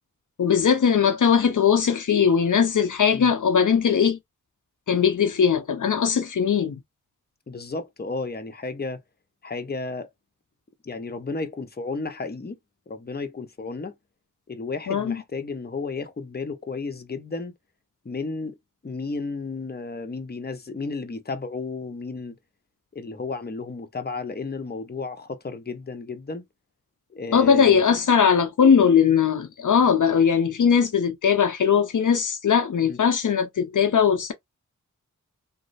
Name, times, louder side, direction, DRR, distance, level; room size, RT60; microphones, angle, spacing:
voice 1, 0.4-4.2 4.9-6.8 14.9-15.2 27.3-34.3, left 7 dB, 70° left, 0.7 m, -20 dB
voice 2, 7.5-9.0 9.4-10.1 10.8-12.6 12.9-13.9 14.5-17.5 18.0-18.6 18.8-22.4 22.9-26.4 27.1-27.9 32.8-33.0, left 4 dB, 30° left, 0.8 m, -33 dB
3.1 x 2.0 x 4.0 m
wide cardioid pair, 65°, 32 cm